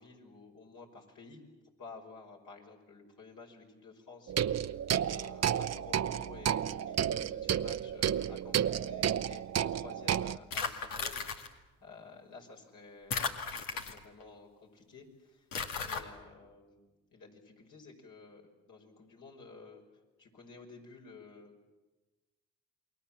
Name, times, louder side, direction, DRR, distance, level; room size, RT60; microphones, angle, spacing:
voice 1, 0.0-1.4 1.8-13.3 13.7-15.5 15.8-19.8 20.2-21.6, left 4 dB, 65° left, 1 dB, 5.8 m, -53 dB
sound 1, 4.3-10.4, right 9 dB, 50° right, 0.7 m, -31 dB
sound 2, 10.5-11.5 13.1-14.2 15.5-16.0, left 5 dB, 85° left, 2.1 m, -35 dB
28.5 x 22.0 x 7.5 m, 1.1 s
supercardioid pair, 65°, 33 cm